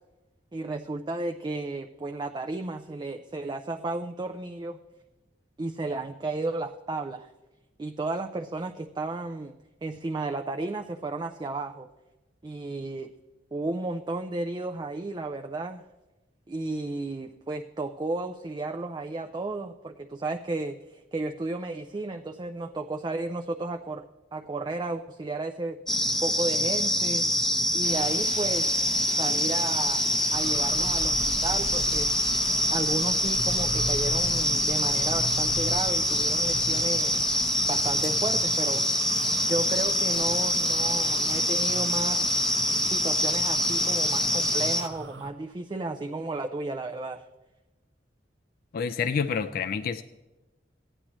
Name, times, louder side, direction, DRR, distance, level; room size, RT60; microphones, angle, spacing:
voice 1, 0.5-4.8 5.6-7.3 7.8-9.5 9.8-11.9 12.4-13.1 13.5-15.8 16.5-24.1 24.3-25.8 26.2-27.3 27.7-28.8 29.2-30.0 30.3-32.1 32.7-37.2 37.7-38.9 39.5-42.4 42.9-47.2, right 2 dB, 25° right, 5 dB, 0.4 m, -33 dB
sound 1, 25.9-44.8, equal, ahead, 0.7 m, -25 dB
sound 2, 27.8-44.9, left 4 dB, 35° left, 0.9 m, -42 dB
sound 3, 30.3-45.3, right 1 dB, 85° right, 0.9 m, -40 dB
voice 2, 48.7-50.0, left 6 dB, 55° left, 10 dB, 0.4 m, -28 dB
15.0 x 9.9 x 3.0 m, 1.1 s
head